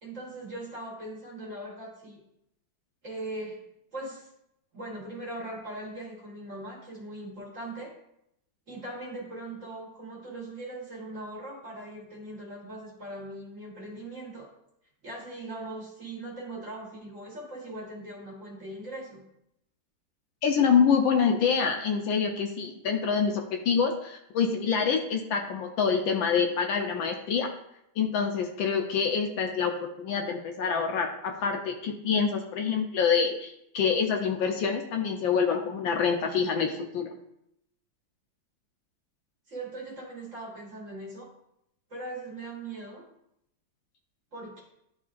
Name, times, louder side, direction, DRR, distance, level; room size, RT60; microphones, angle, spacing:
voice 1, 0.0-2.2 3.0-3.6 3.9-4.3 4.7-7.9 8.7-14.5 15.0-19.2 39.5-41.3 41.9-43.0 44.3-44.6, right 1 dB, 40° right, -3 dB, 1.6 m, -40 dB
voice 2, 20.4-27.5 28.0-37.1, left 6 dB, 75° left, 3 dB, 1.3 m, -26 dB
11.0 x 3.7 x 2.5 m, 0.79 s
omnidirectional pair, 2.3 m